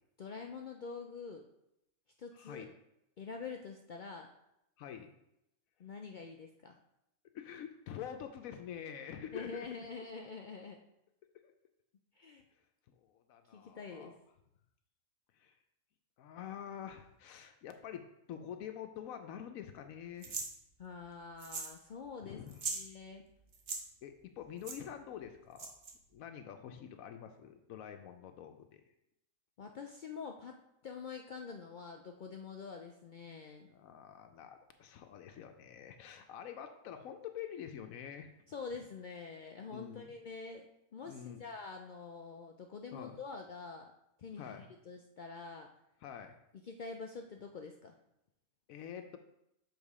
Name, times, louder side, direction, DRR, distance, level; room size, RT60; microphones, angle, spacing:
voice 1, 0.2-1.4 2.2-2.6 3.2-4.3 5.8-6.8 9.3-10.8 12.2-12.4 13.5-14.2 20.8-22.4 22.7-23.2 29.6-30.6 30.8-33.7 38.5-40.7 40.9-43.9 44.2-45.7 46.6-48.0, left 4 dB, 65° left, 2 dB, 0.4 m, -46 dB
voice 2, 2.3-2.7 4.8-5.1 7.3-9.7 11.4-11.5 13.0-14.2 15.3-15.6 16.2-20.5 22.2-22.6 24.0-25.7 26.1-28.8 33.7-38.3 39.7-40.1 41.0-41.4 42.9-43.2 44.4-44.7 46.0-46.4 48.7-49.2, left 9 dB, 90° left, 6 dB, 1.0 m, -46 dB
sound 1, 20.2-20.5 21.4-21.8 22.0-22.1 22.5-22.8 23.5-23.8 24.6-24.8 25.6-25.9, right 4 dB, 50° right, 1.1 m, -39 dB
7.2 x 3.7 x 4.8 m, 0.83 s
omnidirectional pair, 1.4 m